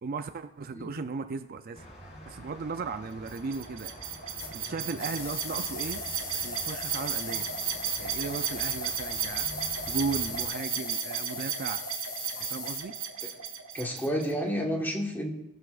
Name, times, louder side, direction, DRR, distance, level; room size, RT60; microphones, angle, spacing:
voice 1, 0.0-1.9 2.2-3.9 4.5-6.0 6.3-7.5 8.0-11.8 12.5-12.9, right 4 dB, 45° right, 9 dB, 0.4 m, -36 dB
sound 1, 1.7-10.5, equal, 30° left, 2.6 m, -47 dB
sound 2, 3.3-14.3, right 8 dB, 80° right, 1.3 m, -34 dB
sound 3, 4.4-12.8, left 5 dB, 50° left, 2.0 m, -40 dB
voice 2, 13.7-15.3, equal, 10° left, 1 dB, 1.3 m, -30 dB
20.5 x 6.9 x 2.4 m, 0.91 s
head